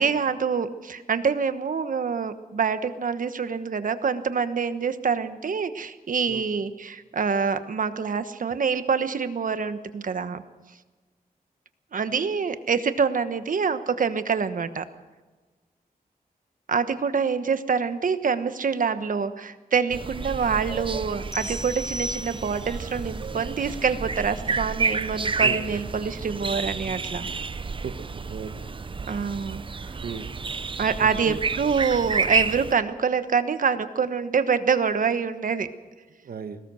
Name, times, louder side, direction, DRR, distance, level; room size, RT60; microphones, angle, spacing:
voice 1, 0.0-10.4 11.9-14.8 16.7-27.3 29.1-29.6 30.8-35.7, right 6 dB, 60° right, 11 dB, 1.2 m, -26 dB
sound 1, 19.9-32.7, right 4 dB, 35° right, 0.7 m, -30 dB
sound 2, 21.3-22.8, equal, 20° left, 0.6 m, -35 dB
voice 2, 25.4-25.9 27.8-28.5 30.0-30.3 31.0-31.4 36.2-36.6, right 6 dB, 80° right, 9 dB, 1.5 m, -36 dB
21.5 x 18.5 x 6.4 m, 1.3 s
wide cardioid pair, 125°, 15 cm